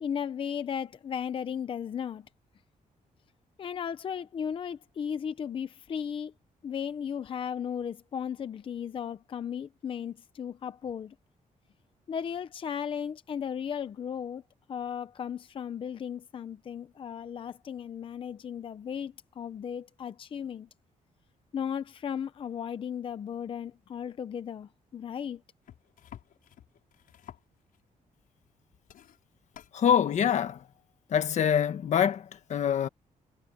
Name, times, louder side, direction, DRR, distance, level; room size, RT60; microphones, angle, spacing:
voice 1, 0.0-2.3 3.6-6.3 6.6-11.1 12.1-14.4 14.7-20.7 21.5-25.4, left 8 dB, 40° left, 0.7 m, -35 dB
sound 1, 25.6-27.9 28.4-28.6 28.8-29.8 30.8-30.9, left 10 dB, 80° left, 6.1 m, -52 dB
voice 2, 29.7-30.7 31.1-32.9, left 8 dB, 55° left, 1.4 m, -25 dB
wide cardioid pair, 175°, 14 cm